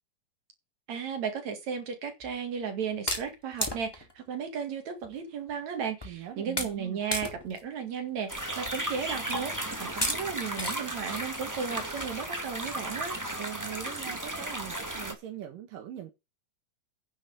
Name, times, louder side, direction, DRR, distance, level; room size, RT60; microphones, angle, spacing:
voice 1, 0.9-13.1, right 7 dB, 55° right, 3.3 m, -35 dB
sound 1, 2.2-2.4 3.1-4.2 5.0-5.1 5.5-5.6 6.0-6.2 6.6-6.8 7.1-7.6 8.1-8.2 9.1-9.3 10.0-10.2 10.6-10.8 11.1-12.7 13.1-13.2 13.6-13.7 13.9-14.0 14.3-14.7, left 1 dB, 10° left, 1.5 m, -34 dB
voice 2, 6.0-7.0 13.4-16.1, right 11 dB, 75° right, 3.1 m, -41 dB
sound 2, 8.3-15.1, right 1 dB, 10° right, 0.9 m, -35 dB
9.9 x 5.4 x 8.0 m
omnidirectional pair, 4.0 m